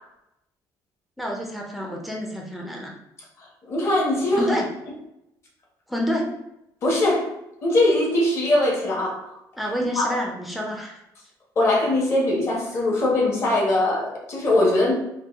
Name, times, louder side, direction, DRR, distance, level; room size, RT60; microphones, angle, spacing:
voice 1, 1.2-3.0 4.3-4.7 5.9-6.3 9.6-11.0, equal, ahead, -1 dB, 0.5 m, -28 dB
voice 2, 3.4-4.6 6.8-7.3 7.6-9.4 9.9-10.1 11.6-14.9, left 1 dB, 35° left, -2 dB, 1.1 m, -21 dB
4.5 x 2.2 x 3.5 m, 0.85 s
cardioid pair, 170°, 8 cm